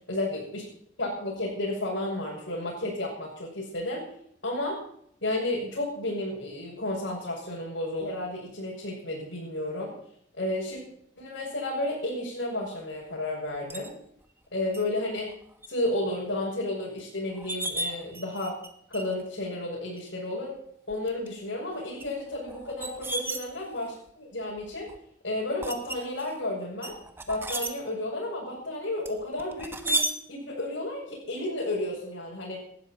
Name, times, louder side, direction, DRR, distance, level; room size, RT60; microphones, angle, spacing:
voice 1, 0.1-0.6 1.0-4.1 4.4-4.8 5.2-9.9 10.4-10.8 11.2-13.9 14.5-15.3 15.7-18.5 18.9-20.6 20.9-24.9 25.2-26.9 27.3-32.6, left 1 dB, 85° left, -7 dB, 6.5 m, -32 dB
sound 1, 13.7-13.9 14.7-14.8 15.3-15.7 16.1-16.2 17.0-17.1 17.3-18.7 18.9-19.3 20.0-20.1 20.9-21.3 22.0-24.0 24.6-25.0 25.6-26.3 26.8-27.7 29.0-30.1, right 1 dB, 10° right, 1.1 m, -33 dB
18.5 x 13.0 x 4.5 m, 0.67 s
head